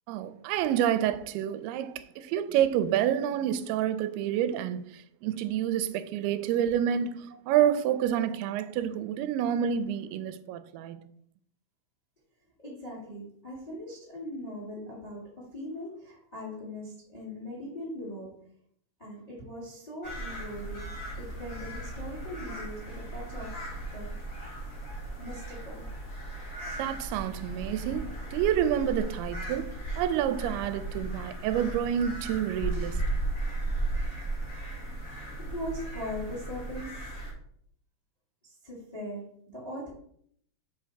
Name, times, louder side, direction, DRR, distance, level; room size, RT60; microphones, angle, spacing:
voice 1, 0.1-11.0 26.8-29.7 30.0-33.1, right 10 dB, 90° right, 2.5 m, -28 dB
voice 2, 12.6-18.4 19.0-23.6 23.9-24.2 25.2-25.9 35.5-37.1 38.4-39.9, left 1 dB, 20° left, 1.1 m, -40 dB
sound 1, 20.0-37.3, right 2 dB, 40° left, 1.1 m, -36 dB
7.7 x 3.5 x 4.5 m
omnidirectional pair, 4.4 m